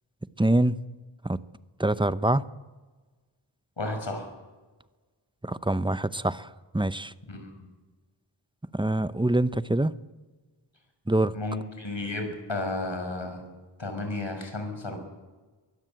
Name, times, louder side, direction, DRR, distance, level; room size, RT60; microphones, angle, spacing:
voice 1, 0.4-0.8 1.2-1.4 1.8-2.4 5.4-7.1 8.7-9.9 11.1-11.3, right 1 dB, 10° right, 14 dB, 0.8 m, -25 dB
voice 2, 3.8-4.3 7.3-7.5 11.3-13.4 13.8-15.0, left 2 dB, 65° left, 4 dB, 6.0 m, -33 dB
23.0 x 17.0 x 7.7 m, 1.3 s
wide cardioid pair, 55°, 48 cm